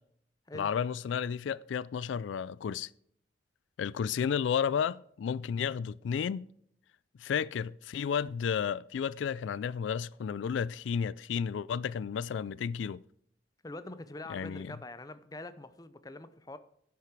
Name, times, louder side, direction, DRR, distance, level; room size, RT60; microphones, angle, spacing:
voice 1, 0.5-2.9 3.8-6.5 7.2-13.0 14.3-14.7, left 7 dB, 85° left, 0.3 m, -32 dB
voice 2, 13.6-16.6, left 2 dB, 20° left, 0.6 m, -44 dB
10.5 x 8.3 x 4.6 m
head